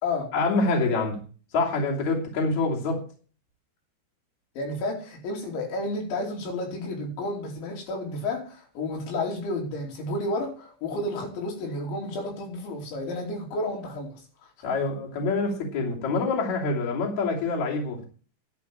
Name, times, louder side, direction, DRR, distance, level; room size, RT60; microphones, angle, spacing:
voice 1, 0.3-1.2 1.5-3.0 14.6-18.1, left 3 dB, 45° left, 3.7 m, -26 dB
voice 2, 4.6-14.5, left 2 dB, 85° left, 5.4 m, -31 dB
11.0 x 6.4 x 8.7 m
omnidirectional pair, 5.2 m